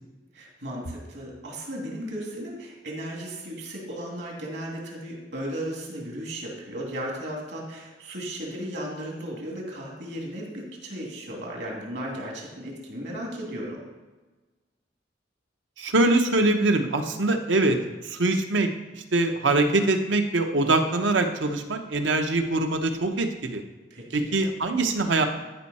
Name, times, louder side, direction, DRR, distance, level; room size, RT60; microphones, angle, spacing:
voice 1, 0.3-13.9 23.9-24.4, right 1 dB, 70° right, -2 dB, 2.6 m, -35 dB
voice 2, 15.8-17.8 18.1-18.7 19.1-23.6 24.1-25.2, right 2 dB, 85° right, 6 dB, 0.9 m, -23 dB
13.5 x 5.4 x 4.2 m, 1.2 s
head